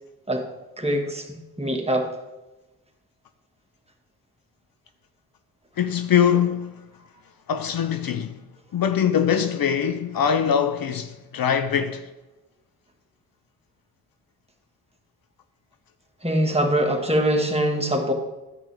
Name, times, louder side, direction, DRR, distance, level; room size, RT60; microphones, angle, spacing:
voice 1, 0.8-1.3 1.6-2.1 16.2-18.1, right 1 dB, 15° right, 1.7 m, -23 dB
voice 2, 5.8-6.7 7.5-8.4 8.7-12.1, left 8 dB, 60° left, 0.7 m, -22 dB
10.0 x 8.0 x 3.5 m
supercardioid pair, 40°, 41 cm